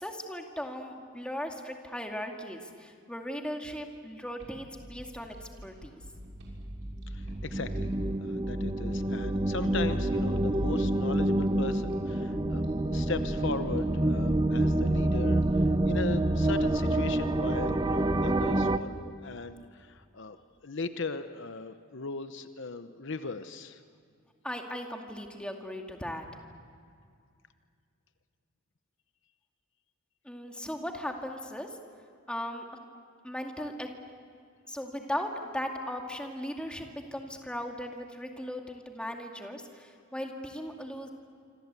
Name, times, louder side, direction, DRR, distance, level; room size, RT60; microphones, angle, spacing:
voice 1, 0.0-6.0 24.4-26.3 30.2-31.8 32.3-32.6 33.2-33.9 34.7-41.1, equal, 5° left, 2 dB, 2.3 m, -38 dB
sound 1, 4.4-17.5, equal, 70° right, 6.8 m, -50 dB
sound 2, 6.2-18.8, right 1 dB, 20° right, 0.8 m, -27 dB
voice 2, 7.1-7.9 8.2-12.6 12.9-23.8, left 3 dB, 60° left, 10 dB, 0.9 m, -38 dB
26.5 x 26.0 x 8.3 m, 2.3 s
head